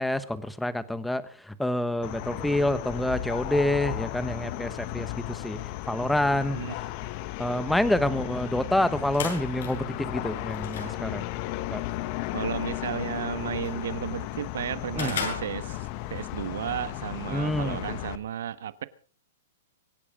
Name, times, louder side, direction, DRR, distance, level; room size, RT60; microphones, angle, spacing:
voice 1, 0.0-5.6 5.9-6.6 7.4-11.2 11.7-11.8 14.9-15.1 17.3-17.8, left 1 dB, ahead, 1.1 m, -27 dB
sound 1, 2.0-18.2, left 15 dB, 40° left, 1.1 m, -35 dB
sound 2, 8.7-16.2, left 6 dB, 70° left, 7.9 m, -40 dB
voice 2, 12.3-18.8, right 10 dB, 70° right, 1.3 m, -33 dB
24.5 x 9.8 x 5.0 m
hypercardioid pair, 155°, 0 cm